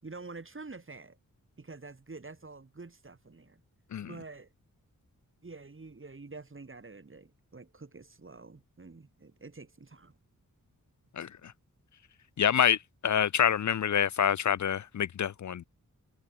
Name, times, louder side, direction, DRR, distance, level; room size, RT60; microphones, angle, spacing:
voice 1, 0.0-1.2 1.6-3.6 4.0-4.5 5.4-10.2, right 3 dB, 40° right, 5.5 m, -47 dB
voice 2, 12.4-12.8 13.0-15.6, left 8 dB, 60° left, 0.5 m, -26 dB
wide cardioid pair, 95°, 32 cm